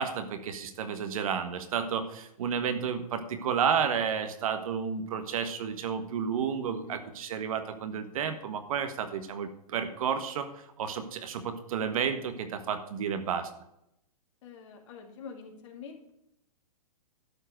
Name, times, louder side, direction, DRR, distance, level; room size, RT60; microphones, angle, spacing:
voice 1, 0.0-13.5, right 7 dB, 65° right, 8 dB, 1.5 m, -31 dB
voice 2, 6.7-7.0 14.4-16.1, left 6 dB, 50° left, 2 dB, 2.5 m, -46 dB
12.0 x 4.6 x 7.6 m, 0.79 s
hypercardioid pair, 140°, 20 cm